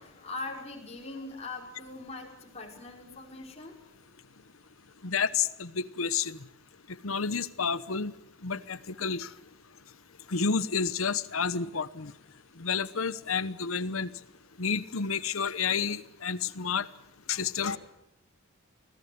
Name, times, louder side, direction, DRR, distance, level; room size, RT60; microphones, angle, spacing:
voice 1, 0.0-3.8 17.6-17.8, left 3 dB, 30° left, 0 dB, 5.1 m, -41 dB
voice 2, 5.0-6.4 6.9-8.1 8.4-9.3 10.3-12.1 12.6-14.1 14.6-16.9 17.3-17.8, left 5 dB, 90° left, 16 dB, 1.1 m, -30 dB
25.0 x 17.0 x 9.5 m, 0.81 s
head